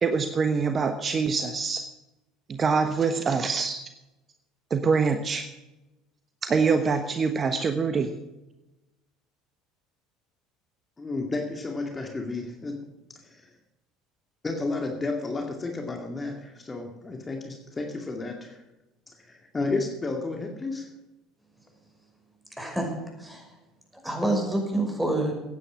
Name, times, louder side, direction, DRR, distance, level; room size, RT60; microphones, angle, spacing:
voice 1, 0.0-1.8 2.5-3.8 4.7-5.5 6.4-8.1, right 5 dB, 35° right, 8 dB, 1.1 m, -24 dB
voice 2, 11.0-12.8 13.2-13.5 14.4-18.6 19.1-20.9, left 3 dB, 25° left, 3 dB, 2.2 m, -32 dB
voice 3, 22.6-22.9 23.2-23.6 24.0-25.3, right 1 dB, 5° right, 2 dB, 5.8 m, -27 dB
15.5 x 9.6 x 6.3 m, 1.0 s
hypercardioid pair, 70°, 0 cm